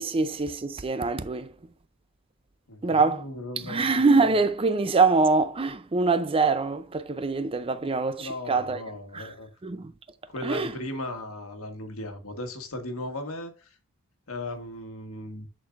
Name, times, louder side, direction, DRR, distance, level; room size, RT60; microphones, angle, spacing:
voice 1, 0.0-1.5 2.8-3.2 3.6-8.8 9.1-9.2 9.6-9.9 10.4-10.7, right 3 dB, 25° right, 0.5 m, -24 dB
voice 2, 2.7-3.9 7.8-7.9 8.2-9.5 10.3-13.8 14.3-15.5, left 1 dB, 75° left, 1.5 m, -37 dB
10.5 x 4.5 x 2.5 m
head